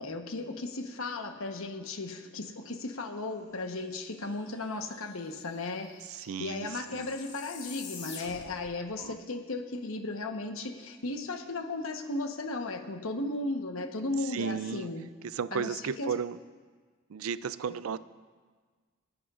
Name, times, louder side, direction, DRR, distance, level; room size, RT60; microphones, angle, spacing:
voice 1, 0.0-5.9 6.4-15.1 15.5-16.1, left 2 dB, 80° left, 5 dB, 1.1 m, -35 dB
sound 1, 4.2-4.3 4.5-8.7, left 5 dB, 55° left, 2.2 m, -47 dB
voice 2, 6.1-7.2 9.0-9.2 14.2-14.9 15.2-16.4 17.1-18.0, right 6 dB, 85° right, 16 dB, 0.4 m, -34 dB
28.0 x 10.0 x 2.5 m, 1.5 s
head